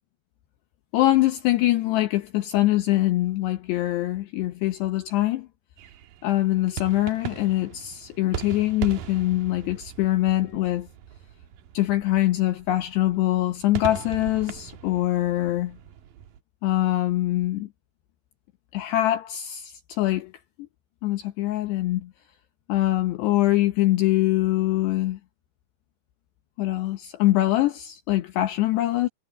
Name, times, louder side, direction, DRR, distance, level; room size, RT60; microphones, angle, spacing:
voice 1, 0.9-5.5 6.2-10.9 11.7-15.8 16.6-17.7 18.7-20.3 21.0-22.1 22.7-25.2 26.6-29.1, left 15 dB, 75° left, 2.8 m, -23 dB
sound 1, 5.8-16.4, right 9 dB, 70° right, 2.3 m, -39 dB
omnidirectional pair, 5.5 m